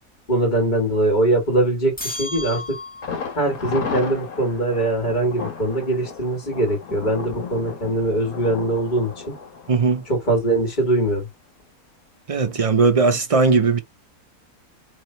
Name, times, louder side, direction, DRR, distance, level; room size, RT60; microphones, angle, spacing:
voice 1, 0.3-2.6 3.4-9.1 10.1-11.3, right 1 dB, 30° left, 2.2 m, -22 dB
sound 1, 2.0-3.3, left 2 dB, 5° left, 1.5 m, -33 dB
Thunder, 3.0-10.8 11.1-11.2 11.6-11.7, left 5 dB, 80° left, 1.8 m, -34 dB
voice 2, 9.7-10.0 12.3-13.8, right 4 dB, 40° right, 0.5 m, -18 dB
3.5 x 3.1 x 4.4 m
omnidirectional pair, 1.5 m